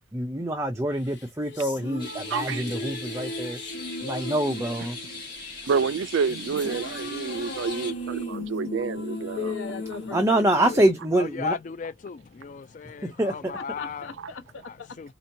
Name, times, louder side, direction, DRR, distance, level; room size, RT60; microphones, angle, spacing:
voice 1, 0.1-3.6 4.0-5.0 10.1-11.6 13.0-13.6, right 1 dB, 15° right, 0.5 m, -25 dB
sound 1, 1.0-11.5, left 1 dB, 70° left, 1.7 m, -37 dB
sound 2, 2.0-7.9, left 3 dB, 25° left, 2.0 m, -40 dB
voice 2, 2.3-2.6 5.6-9.5, right 6 dB, 75° right, 0.3 m, -28 dB
voice 3, 9.4-10.9 13.5-15.0, left 5 dB, 90° left, 1.0 m, -37 dB
voice 4, 11.2-14.1 15.0-15.1, left 5 dB, 40° left, 0.3 m, -35 dB
4.3 x 2.8 x 2.6 m
head